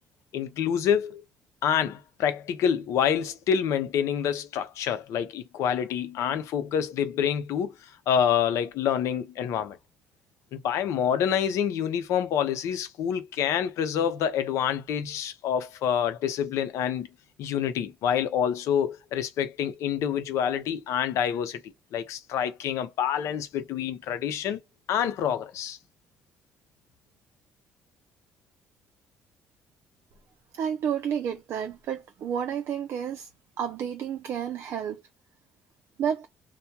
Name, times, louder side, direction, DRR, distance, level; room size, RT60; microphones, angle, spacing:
voice 1, 0.3-1.2 1.6-7.7 8.1-9.8 10.5-17.1 17.4-21.6 21.9-24.6 24.9-25.8, left 8 dB, 70° left, 0.6 m, -27 dB
voice 2, 30.5-33.3 33.6-35.0 36.0-36.3, right 8 dB, 60° right, 0.4 m, -30 dB
2.2 x 2.1 x 2.8 m
cardioid pair, 100°, 5 cm